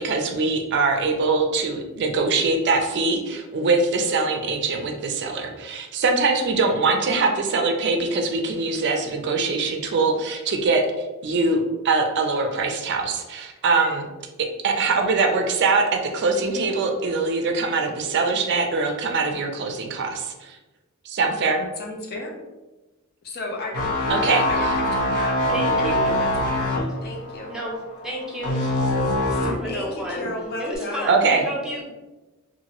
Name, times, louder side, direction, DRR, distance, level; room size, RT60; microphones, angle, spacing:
voice 1, 0.0-10.9 11.2-14.1 14.4-20.6 21.0-21.6 24.1-24.4 31.1-31.4, right 3 dB, 55° right, 3 dB, 0.4 m, -22 dB
voice 2, 21.6-22.4 23.2-25.4 25.7-25.9 26.2-27.5 29.6-31.2, left 2 dB, 45° left, 1 dB, 0.5 m, -33 dB
sound 1, 23.7-29.7 30.1-30.4, left 1 dB, 85° left, 0.7 m, -23 dB
voice 3, 25.5-26.2 27.5-27.8 28.0-28.6 29.1-30.3 30.6-31.9, equal, 5° right, -3 dB, 0.6 m, -31 dB
2.8 x 2.5 x 2.8 m, 1.1 s
head